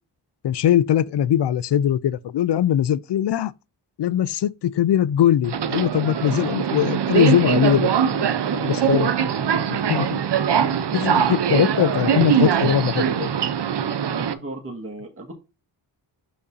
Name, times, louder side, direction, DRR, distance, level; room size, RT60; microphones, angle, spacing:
voice 1, 0.4-3.5 4.0-8.3 8.7-9.1 9.9-10.2 10.9-13.3, left 10 dB, 55° left, 0.6 m, -21 dB
Subway metro underground, 5.4-14.3, right 8 dB, 55° right, 0.8 m, -22 dB
voice 2, 8.5-8.9 11.7-12.2 14.1-15.3, right 3 dB, 25° right, 1.7 m, -33 dB
6.8 x 5.3 x 2.7 m
supercardioid pair, 45°, 49 cm